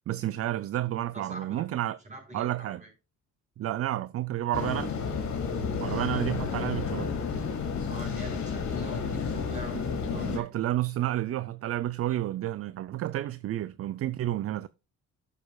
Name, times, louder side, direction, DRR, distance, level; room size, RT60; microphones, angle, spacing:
voice 1, 0.1-2.0 2.3-2.8 3.6-5.0 5.8-7.1 9.7-9.8 10.1-14.7, right 13 dB, 50° right, 0.4 m, -31 dB
voice 2, 1.1-1.7 2.0-2.9 5.9-6.1 7.9-9.8 10.1-10.4, right 1 dB, 25° right, 5.1 m, -44 dB
sound 1, 4.5-10.4, left 5 dB, 65° left, 2.8 m, -31 dB
12.5 x 6.7 x 2.3 m
cardioid pair, 90°, 30 cm